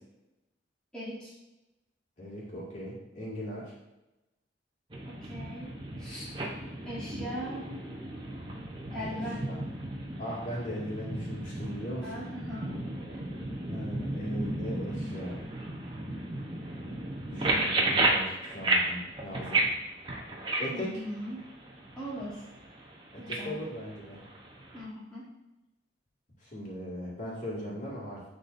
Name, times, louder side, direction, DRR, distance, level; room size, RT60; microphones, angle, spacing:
voice 1, 0.9-1.3 5.1-5.7 6.0-6.3 6.8-7.7 8.9-9.5 12.0-13.3 20.7-21.4 22.0-22.4 23.2-23.6 24.7-25.3, equal, 5° left, -9 dB, 1.3 m, -40 dB
voice 2, 2.2-3.7 9.0-9.6 10.2-12.2 13.7-15.5 17.3-19.7 20.6-21.0 23.1-24.2 26.4-28.2, equal, 40° left, -6 dB, 2.3 m, -39 dB
sound 1, 4.9-24.8, right 2 dB, 25° right, 0.9 m, -34 dB
10.0 x 4.1 x 2.7 m, 0.99 s
head